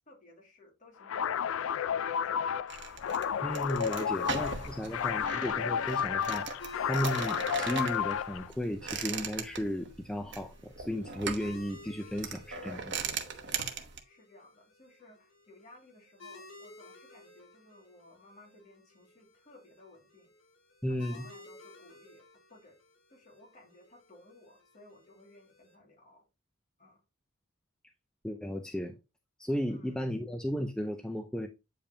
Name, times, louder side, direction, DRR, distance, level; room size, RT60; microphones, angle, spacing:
voice 1, 0.1-2.6 4.7-5.0 12.6-13.7 14.1-20.3 20.9-22.8 23.1-26.3 26.8-27.0 29.7-30.0, left 2 dB, 40° left, 2.4 m, -57 dB
sound 1, 1.0-8.5, left 8 dB, 80° left, 0.3 m, -32 dB
sound 2, 2.7-14.0, right 5 dB, 60° right, 1.1 m, -39 dB
voice 2, 3.4-6.5 6.8-12.8 20.8-21.3 28.2-29.0 29.4-31.5, equal, 5° left, 0.5 m, -34 dB
sound 3, 6.6-25.7, left 2 dB, 65° left, 2.7 m, -55 dB
8.5 x 5.3 x 2.8 m
head